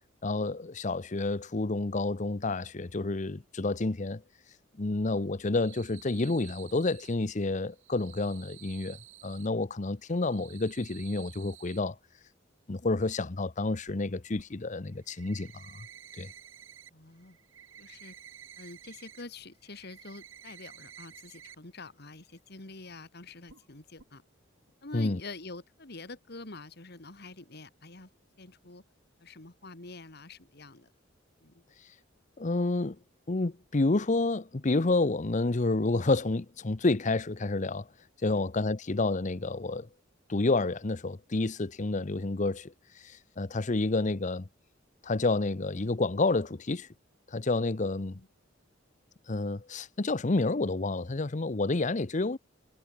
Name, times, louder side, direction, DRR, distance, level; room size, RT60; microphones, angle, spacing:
voice 1, 0.2-4.2 4.8-12.0 12.7-15.9 16.2-16.3 24.9-25.2 32.4-33.0 33.3-37.9 38.2-39.9 40.3-42.7 43.0-44.5 45.0-46.9 47.3-48.2 49.3-52.4, left 2 dB, 40° left, 0.8 m, -29 dB
sound 1, 5.3-7.1 7.7-9.5 10.0-11.8 13.9-14.0 14.4-14.5 14.9-16.9 17.2-19.2 19.6-21.5 21.9-22.0 22.4-22.5 23.5-23.7 24.0-24.1, right 11 dB, 85° right, 1.4 m, -52 dB
voice 2, 16.9-17.4 17.8-18.2 18.6-24.2 24.8-28.1 28.4-28.8 29.2-30.9 31.4-31.6 38.3-38.5 48.1-48.3, left 3 dB, 55° left, 2.4 m, -46 dB
head